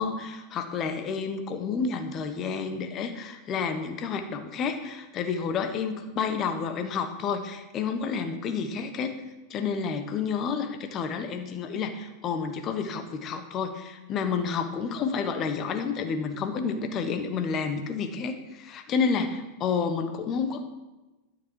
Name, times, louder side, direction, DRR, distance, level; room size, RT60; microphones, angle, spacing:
voice 1, 0.0-9.2 9.5-20.7, left 5 dB, 30° left, 7 dB, 1.3 m, -30 dB
12.5 x 7.3 x 4.7 m, 1.1 s
figure-of-eight pair, 90°, 0 cm